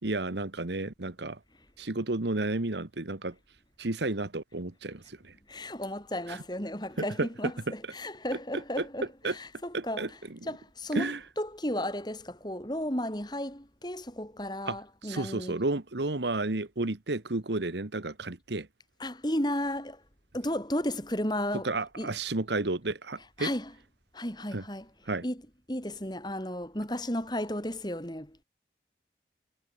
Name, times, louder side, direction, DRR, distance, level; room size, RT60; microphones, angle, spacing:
voice 1, 0.0-1.4 1.8-3.3 3.8-5.3 6.3-6.4 7.0-7.3 8.5-8.9 9.2-9.4 9.7-10.4 10.9-11.2 14.7-18.7 21.6-23.5 24.5-24.6 25.1-25.2, right 2 dB, 80° right, 1.4 m, -32 dB
voice 2, 5.5-10.2 10.5-15.6 19.0-20.0 20.3-21.7 22.0-22.1 23.4-23.7 24.1-24.9 25.2-25.4 25.7-28.4, left 1 dB, 25° left, 6.7 m, -34 dB
head